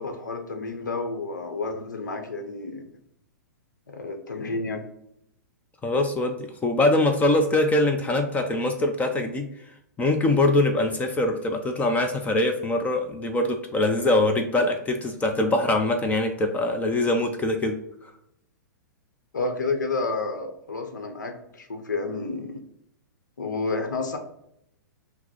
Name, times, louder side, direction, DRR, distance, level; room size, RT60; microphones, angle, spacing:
voice 1, 0.0-2.8 3.9-4.8 19.3-22.6 23.4-24.2, left 3 dB, 75° left, 6 dB, 0.8 m, -30 dB
voice 2, 5.8-9.5 10.0-17.8, left 2 dB, 15° left, 5 dB, 0.5 m, -23 dB
5.8 x 2.0 x 4.3 m, 0.76 s
figure-of-eight pair, 110°, 10 cm